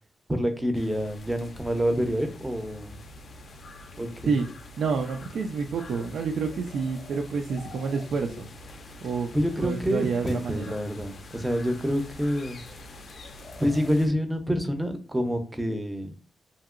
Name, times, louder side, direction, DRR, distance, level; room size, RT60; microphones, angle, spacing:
voice 1, 0.3-3.0 4.0-4.3 9.3-12.6 13.6-16.1, equal, 10° right, 6 dB, 0.5 m, -27 dB
sound 1, 0.7-14.1, left 2 dB, 50° left, 0.4 m, -45 dB
voice 2, 4.8-8.5 9.0-9.3 9.6-10.7, right 5 dB, 80° right, 2 dB, 0.3 m, -28 dB
2.8 x 2.8 x 2.4 m, 0.37 s
wide cardioid pair, 125°, 0 cm